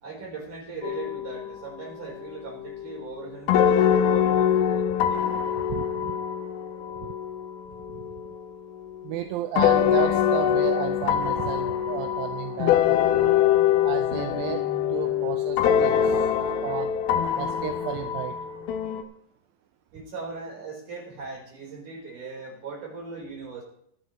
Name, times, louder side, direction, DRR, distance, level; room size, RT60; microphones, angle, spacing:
voice 1, 0.0-5.4 19.9-23.6, right 4 dB, 55° right, -2 dB, 5.3 m, -39 dB
sound 1, 0.8-1.9 2.2-8.4 9.6-19.0, left 9 dB, 80° left, 2.7 m, -24 dB
voice 2, 5.7-6.1 8.0-8.1 9.0-13.3 13.8-14.6 14.9-16.3 16.6-16.9 17.4-18.4, right 12 dB, 80° right, 7 dB, 2.3 m, -33 dB
23.5 x 7.9 x 3.0 m, 0.67 s
omnidirectional pair, 4.3 m